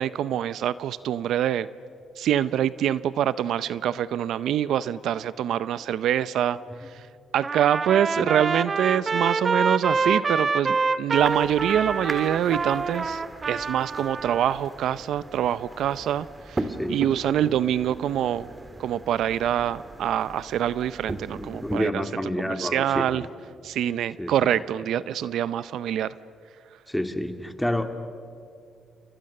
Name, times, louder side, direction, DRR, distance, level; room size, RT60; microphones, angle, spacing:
voice 1, 0.0-1.7 2.2-6.6 7.3-13.2 13.5-18.5 18.8-22.0 22.5-23.2 23.6-26.1, right 10 dB, 75° right, 0.6 m, -25 dB
Trumpet, 7.4-14.5, right 4 dB, 35° right, 1.0 m, -26 dB
sound 1, 11.1-21.9, right 2 dB, 20° right, 1.7 m, -38 dB
voice 2, 16.6-17.0 21.3-23.3 24.2-24.3 26.9-27.9, left 1 dB, 5° left, 2.1 m, -29 dB
29.5 x 29.5 x 6.6 m
cardioid pair, 90°, 0 cm